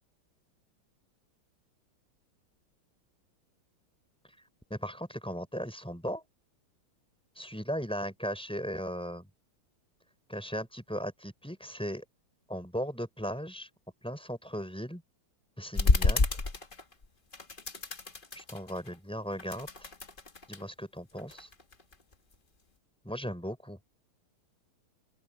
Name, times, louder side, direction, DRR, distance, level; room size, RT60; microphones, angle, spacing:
voice 1, 4.7-6.2 7.4-9.3 10.3-12.0 12.5-13.7 14.0-15.0 15.6-16.4 18.3-19.9 20.5-21.5 23.0-23.8, equal, ahead, 4.9 m, -37 dB
sound 1, 15.7-17.1 17.3-19.0 19.3-20.6 21.2-22.3, left 3 dB, 25° left, 1.5 m, -29 dB
open air
omnidirectional pair, 2.3 m